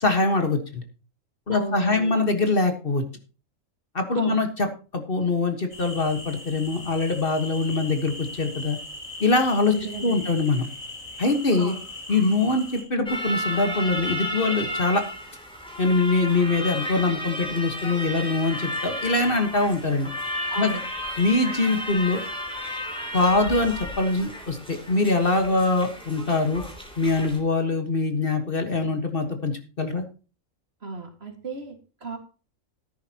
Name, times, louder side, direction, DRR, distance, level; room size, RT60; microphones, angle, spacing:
voice 1, 0.0-0.8 1.5-3.0 3.9-4.7 4.9-8.8 9.2-9.7 10.0-10.6 11.2-11.7 12.1-15.0 15.8-20.1 20.6-20.7 21.2-22.2 23.1-26.6 27.0-29.5 29.8-30.0, left 3 dB, 40° left, 5 dB, 1.6 m, -23 dB
voice 2, 1.5-2.2 4.1-4.4 9.7-10.3 11.6-11.8 20.5-20.9 30.8-32.2, right 3 dB, 45° right, 5 dB, 2.3 m, -34 dB
sound 1, 5.7-12.8, left 2 dB, 70° left, 4.1 m, -39 dB
sound 2, 13.1-27.4, left 1 dB, 5° left, 2.8 m, -33 dB
14.0 x 10.5 x 2.9 m, 0.34 s
omnidirectional pair, 1.4 m